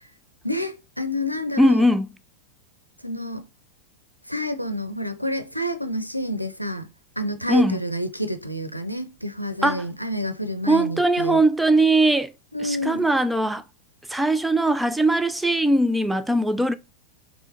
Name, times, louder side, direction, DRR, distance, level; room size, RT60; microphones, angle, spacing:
voice 1, 0.4-1.9 3.0-3.5 4.3-6.9 7.2-11.4 12.5-13.1, left 1 dB, 90° left, 0.5 m, -29 dB
voice 2, 1.6-2.1 7.5-7.8 9.6-9.9 10.7-12.3 12.6-13.6 14.1-16.7, right 1 dB, 5° right, 0.4 m, -20 dB
3.6 x 3.2 x 3.8 m
figure-of-eight pair, 90°, 0 cm